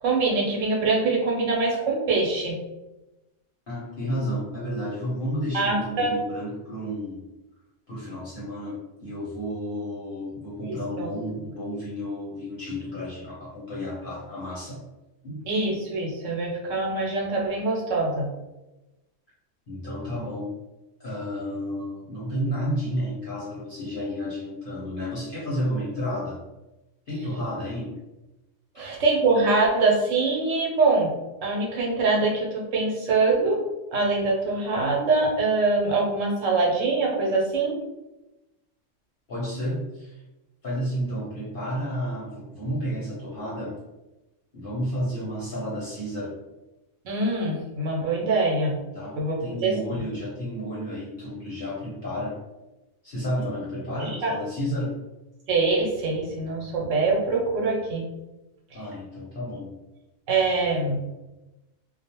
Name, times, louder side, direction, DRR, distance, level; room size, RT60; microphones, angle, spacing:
voice 1, 0.0-2.5 5.5-6.1 10.7-11.1 15.5-18.3 28.8-31.1 31.4-33.7 33.9-37.8 47.0-48.8 49.2-49.4 49.6-49.7 54.0-54.3 55.5-58.0 60.3-61.0, right 3 dB, 80° right, -1 dB, 1.0 m, -24 dB
voice 2, 3.7-7.2 7.9-14.8 15.2-15.4 19.7-20.5 21.0-26.4 27.1-27.9 28.7-28.8 39.3-40.2 40.6-43.8 44.5-46.4 48.9-52.4 53.0-55.0 58.7-59.7, equal, 50° left, -9 dB, 0.8 m, -31 dB
2.4 x 2.1 x 2.8 m, 1.0 s
omnidirectional pair, 1.3 m